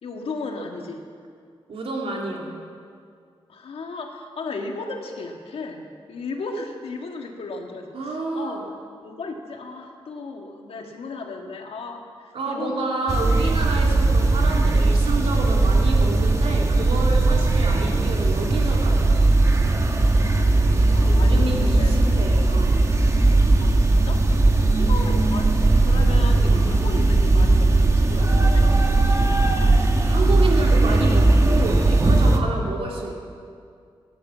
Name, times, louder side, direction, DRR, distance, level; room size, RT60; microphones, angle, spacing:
voice 1, 0.0-1.0 3.5-8.7 9.0-13.0 20.9-21.9 23.6-28.7, left 3 dB, 80° left, 2 dB, 1.9 m, -35 dB
voice 2, 1.7-2.5 7.9-8.6 12.3-19.4 21.1-22.8 29.7-33.3, right 2 dB, 80° right, -1 dB, 2.9 m, -29 dB
sound 1, 13.1-32.4, right 2 dB, 30° right, 1.2 m, -18 dB
18.0 x 11.0 x 7.4 m, 2.2 s
wide cardioid pair, 140°, 10 cm